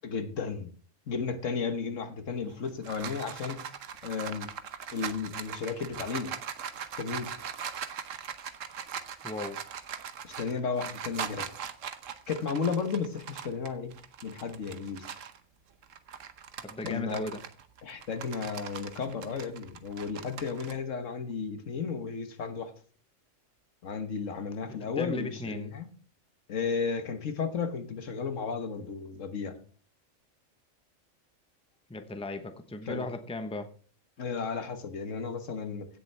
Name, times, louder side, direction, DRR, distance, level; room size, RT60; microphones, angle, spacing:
voice 1, 0.0-0.7 1.1-3.7 4.0-4.5 4.9-6.3 7.0-7.3 10.2-11.5 12.3-13.9 14.2-15.1 16.8-17.2 17.8-22.7 23.8-25.9 26.5-29.6 32.8-33.1 34.2-35.9, left 5 dB, 75° left, 8 dB, 1.6 m, -33 dB
sound 1, 2.4-15.4 15.8-20.7, right 8 dB, 80° right, 1.3 m, -40 dB
voice 2, 9.2-9.6 16.6-17.4 25.0-25.7 31.9-33.7, left 2 dB, 5° left, 8 dB, 0.9 m, -36 dB
16.5 x 7.0 x 3.4 m, 0.40 s
omnidirectional pair, 1.3 m